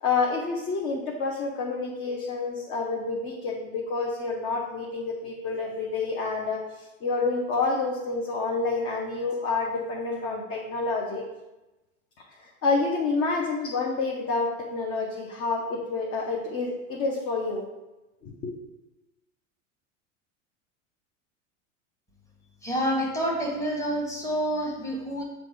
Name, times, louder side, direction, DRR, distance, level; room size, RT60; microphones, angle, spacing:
voice 1, 0.0-11.2 12.4-17.6 18.2-18.5, left 3 dB, 35° left, -2 dB, 0.9 m, -28 dB
voice 2, 22.6-25.2, equal, 10° left, -3 dB, 1.4 m, -28 dB
7.5 x 2.6 x 5.0 m, 1.0 s
figure-of-eight pair, 85°, 39 cm